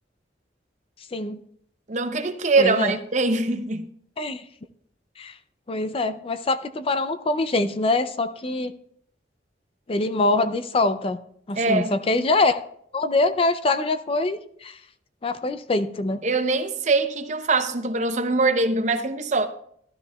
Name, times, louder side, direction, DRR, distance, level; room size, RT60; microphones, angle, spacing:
voice 1, 1.9-3.8 11.6-11.9 16.2-19.5, right 3 dB, 40° right, 0.7 m, -23 dB
voice 2, 2.6-3.0 4.2-4.4 5.2-5.4 5.7-8.7 9.9-11.2 11.5-12.6 12.9-14.8 15.2-16.2, left 2 dB, 30° left, 0.4 m, -24 dB
13.0 x 12.5 x 2.3 m
head